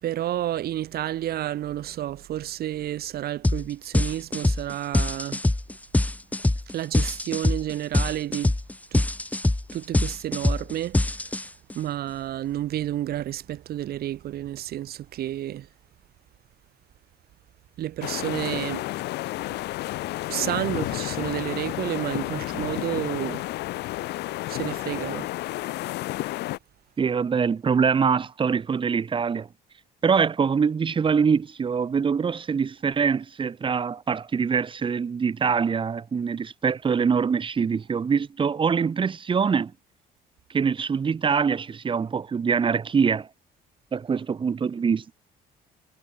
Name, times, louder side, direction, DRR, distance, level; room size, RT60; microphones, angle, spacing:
voice 1, 0.0-5.4 6.7-8.5 8.9-9.1 9.7-11.0 11.7-15.7 17.8-18.8 20.3-23.4 24.5-25.3, right 13 dB, 65° right, 4.6 m, -30 dB
sound 1, 3.4-3.6 3.9-11.7, left 2 dB, 10° left, 1.8 m, -23 dB
sound 2, 18.0-26.6, left 17 dB, 80° left, 1.9 m, -31 dB
voice 2, 27.0-29.5 30.0-39.7 40.5-43.3 43.9-45.1, right 6 dB, 30° right, 1.3 m, -24 dB
cardioid pair, 110°, 17 cm